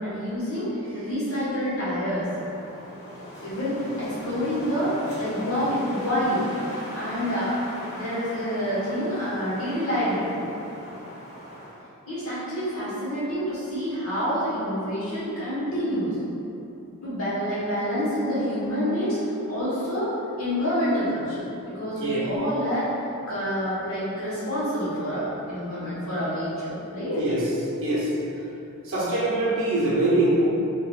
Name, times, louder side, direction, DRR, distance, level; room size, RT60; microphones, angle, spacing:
voice 1, 0.0-0.7 0.9-2.2 3.4-6.5 6.9-7.6 7.9-10.3 12.1-16.2 17.0-22.9 23.3-27.2, equal, 70° left, -10 dB, 1.3 m, -27 dB
Wind, 2.0-11.9, equal, 30° left, 0.8 m, -40 dB
voice 2, 28.8-30.4, right 2 dB, 60° right, -6 dB, 0.7 m, -23 dB
3.6 x 2.8 x 2.4 m, 2.9 s
head